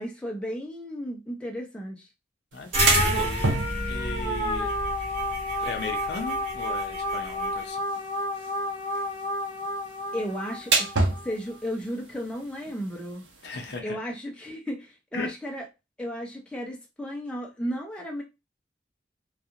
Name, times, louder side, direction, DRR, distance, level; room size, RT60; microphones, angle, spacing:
voice 1, 0.0-2.1 8.9-9.0 10.1-10.9 11.2-13.6 13.8-15.6 16.0-18.2, equal, 5° left, 0.5 m, -34 dB
voice 2, 2.5-3.5 3.9-4.7 5.6-7.8 13.4-14.0 15.1-15.3, left 3 dB, 65° left, 0.6 m, -36 dB
sound 1, 2.5-13.8, right 3 dB, 80° right, 0.7 m, -33 dB
sound 2, 2.7-11.3, left 1 dB, 15° right, 1.3 m, -31 dB
sound 3, 2.7-7.6, right 1 dB, 40° right, 1.2 m, -30 dB
2.3 x 2.3 x 2.8 m
head